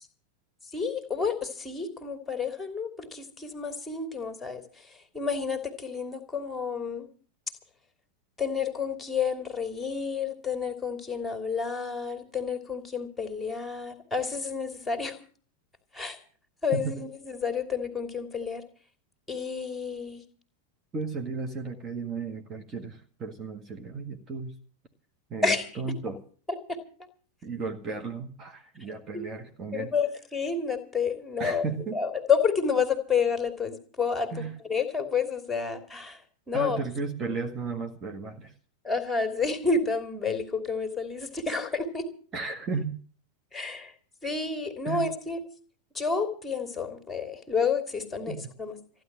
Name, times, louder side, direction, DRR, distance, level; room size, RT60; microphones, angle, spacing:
voice 1, 0.7-4.6 5.1-7.1 8.4-15.1 15.9-16.2 16.6-18.6 19.3-20.2 25.4-25.7 26.7-26.8 28.9-29.2 29.7-31.6 31.9-36.2 36.5-36.8 38.8-42.1 43.5-43.9 44.2-45.4 45.9-48.7, left 5 dB, 10° left, 6 dB, 2.9 m, -30 dB
voice 2, 20.9-24.5 25.3-26.2 27.4-29.9 31.4-32.0 34.3-34.5 36.5-38.5 42.3-42.9 44.9-45.1 48.3-48.5, right 4 dB, 25° right, 3 dB, 1.9 m, -34 dB
15.0 x 11.0 x 7.5 m, 0.43 s
figure-of-eight pair, 90°, 0 cm